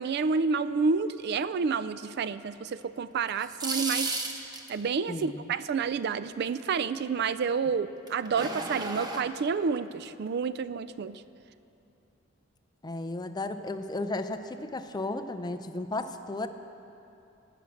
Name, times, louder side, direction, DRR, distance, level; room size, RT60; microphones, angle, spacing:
voice 1, 0.0-4.2 4.7-11.2, right 5 dB, 55° right, 15 dB, 0.3 m, -29 dB
sound 1, 3.3-4.8 8.1-9.2, right 2 dB, 20° right, 0.9 m, -33 dB
voice 2, 5.1-5.5 12.8-16.5, left 2 dB, 20° left, 8 dB, 0.5 m, -34 dB
18.0 x 6.1 x 8.4 m, 2.8 s
head